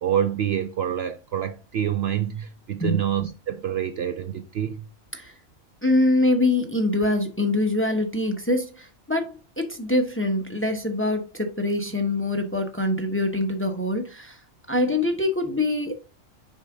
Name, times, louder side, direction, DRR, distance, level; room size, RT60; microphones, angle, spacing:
voice 1, 0.0-4.9, right 10 dB, 65° right, 0.7 m, -27 dB
voice 2, 5.8-14.4 14.7-15.9, left 2 dB, 10° left, 0.7 m, -24 dB
6.4 x 5.0 x 3.6 m
omnidirectional pair, 1.4 m